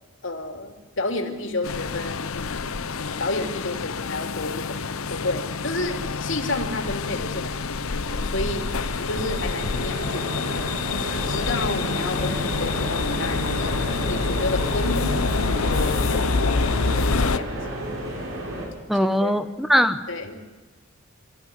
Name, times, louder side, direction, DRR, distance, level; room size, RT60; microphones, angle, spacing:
voice 1, 0.2-4.8 5.1-8.7 9.0-10.7 11.3-13.7 14.1-16.6 16.9-17.6 19.0-19.3 20.1-20.4, left 2 dB, 60° left, 4 dB, 3.3 m, -31 dB
sound 1, 1.6-17.4, left 4 dB, 85° left, 0.9 m, -27 dB
sound 2, 7.9-18.6, right 1 dB, 70° right, 7.5 m, -32 dB
voice 2, 18.9-20.0, equal, ahead, 10 dB, 1.0 m, -20 dB
24.0 x 14.5 x 9.7 m, 1.3 s
head